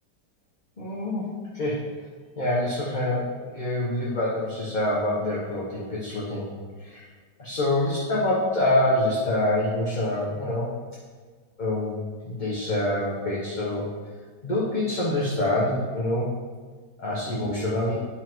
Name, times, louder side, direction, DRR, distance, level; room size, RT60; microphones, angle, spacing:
voice 1, 0.8-1.8 2.4-6.5 6.8-7.1 7.4-10.7 11.6-11.9 12.2-13.9 14.4-16.3 17.0-18.0, left 1 dB, 30° left, -6 dB, 1.0 m, -26 dB
9.7 x 5.5 x 3.1 m, 1.5 s
omnidirectional pair, 1.9 m